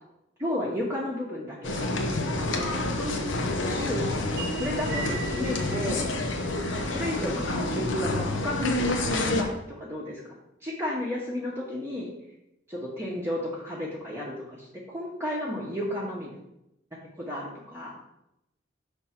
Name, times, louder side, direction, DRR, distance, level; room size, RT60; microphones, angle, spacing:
voice 1, 0.4-1.8 2.4-4.1 4.5-6.1 6.9-10.3 10.6-12.1 12.7-16.3 17.2-18.0, left 1 dB, 15° right, -6 dB, 1.0 m, -33 dB
sound 1, 1.6-9.4, left 2 dB, 80° left, 0.8 m, -28 dB
sound 2, 4.2-8.7, right 5 dB, 55° right, 0.7 m, -42 dB
6.0 x 3.4 x 5.8 m, 0.86 s
head